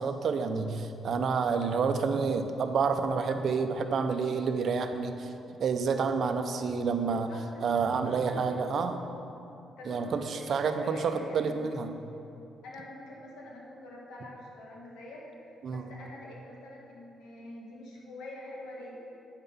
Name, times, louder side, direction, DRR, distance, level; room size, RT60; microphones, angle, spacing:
voice 1, 0.0-5.3 5.6-7.3 7.6-9.0 9.9-11.9 15.6-15.8, right 5 dB, 60° right, 7 dB, 0.6 m, -29 dB
voice 2, 7.1-8.3 9.8-11.8 12.6-15.3 15.7-19.0, left 1 dB, 90° left, -3 dB, 1.6 m, -45 dB
8.8 x 5.5 x 5.5 m, 2.7 s
cardioid pair, 90°, 0 cm